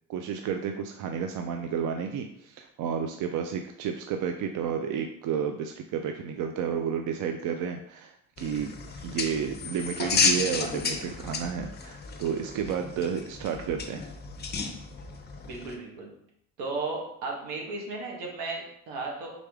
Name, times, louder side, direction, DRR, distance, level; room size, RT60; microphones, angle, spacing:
voice 1, 0.1-14.1, right 7 dB, 60° right, 5 dB, 0.5 m, -31 dB
sound 1, 8.4-15.7, left 5 dB, 30° left, 0.6 m, -32 dB
voice 2, 15.4-16.1 16.6-19.3, right 3 dB, 80° right, -1 dB, 1.3 m, -35 dB
3.8 x 3.3 x 3.5 m, 0.72 s
supercardioid pair, 95°, 36 cm